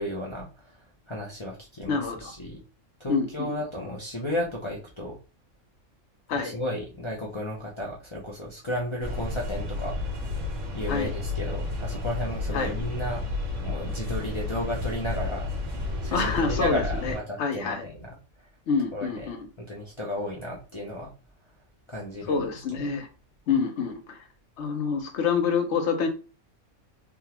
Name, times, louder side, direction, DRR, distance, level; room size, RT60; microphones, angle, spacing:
voice 1, 0.0-2.6 3.0-5.2 6.3-10.0 10.7-13.2 13.6-15.5 16.0-18.1 18.4-18.5 18.9-19.3 19.6-21.1 21.9-22.5 22.8-23.0, left 1 dB, 35° left, -4 dB, 0.5 m, -33 dB
voice 2, 1.9-2.3 3.1-3.5 6.3-6.5 10.9-11.1 12.5-12.7 16.1-17.1 17.4-17.9 18.7-19.5 22.3-23.1 23.5-24.2 24.6-26.1, left 5 dB, 60° left, 5 dB, 0.9 m, -27 dB
sound 1, 9.0-17.2, left 2 dB, 60° right, 1.3 m, -32 dB
3.5 x 2.3 x 2.9 m, 0.33 s
omnidirectional pair, 1.4 m